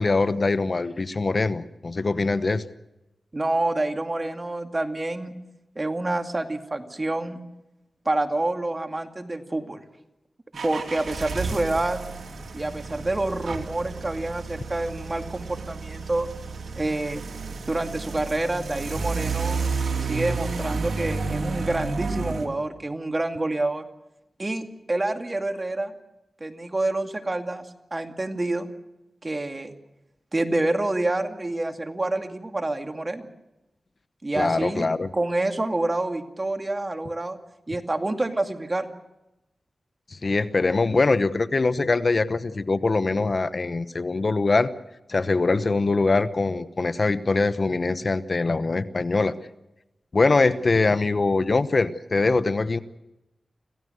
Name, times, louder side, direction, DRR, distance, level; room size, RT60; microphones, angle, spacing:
voice 1, 0.0-2.6 34.3-35.1 40.1-44.7 45.1-49.3 50.1-52.8, left 3 dB, 55° left, 13 dB, 1.0 m, -23 dB
voice 2, 3.3-5.3 5.8-7.4 8.1-9.8 10.6-12.1 12.5-16.3 16.8-17.2 17.7-19.6 20.0-23.8 24.4-25.9 26.4-28.7 29.2-29.7 30.3-33.3 34.2-34.9 35.1-37.4 37.7-38.9, right 2 dB, 35° right, 5 dB, 2.3 m, -27 dB
sound 1, 10.5-22.5, right 4 dB, 85° right, 2.6 m, -31 dB
26.0 x 16.5 x 7.9 m, 0.95 s
cardioid pair, 50°, 0 cm